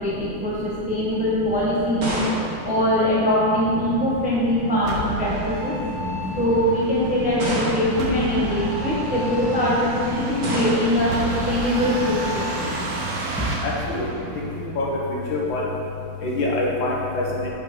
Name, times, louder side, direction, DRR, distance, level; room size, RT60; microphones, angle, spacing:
voice 1, 0.0-2.1 2.6-5.7 6.4-12.7 13.4-13.5, left 1 dB, 5° right, -6 dB, 0.8 m, -22 dB
sound 1, 1.4-3.7 4.8-5.2 6.1-6.2 7.4-8.2 10.4-11.2, right 1 dB, 90° right, 2.6 m, -29 dB
sound 2, 3.5-14.9, right 2 dB, 55° right, 0.9 m, -31 dB
voice 2, 13.6-14.1 14.8-15.6 16.2-17.5, left 2 dB, 65° left, -4 dB, 1.9 m, -25 dB
8.2 x 5.7 x 3.8 m, 2.6 s
omnidirectional pair, 2.3 m